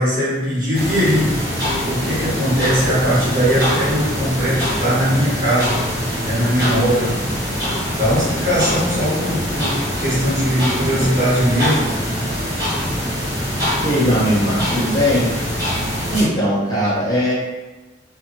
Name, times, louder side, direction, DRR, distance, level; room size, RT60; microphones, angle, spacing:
voice 1, 0.0-1.3 1.8-7.2 7.9-11.8, equal, 45° right, -10 dB, 1.3 m, -20 dB
sound 1, 0.7-16.2, equal, 20° right, 1.1 m, -23 dB
voice 2, 13.8-15.3 16.1-17.3, equal, 20° left, -10 dB, 1.0 m, -19 dB
2.7 x 2.6 x 2.6 m, 1.2 s
head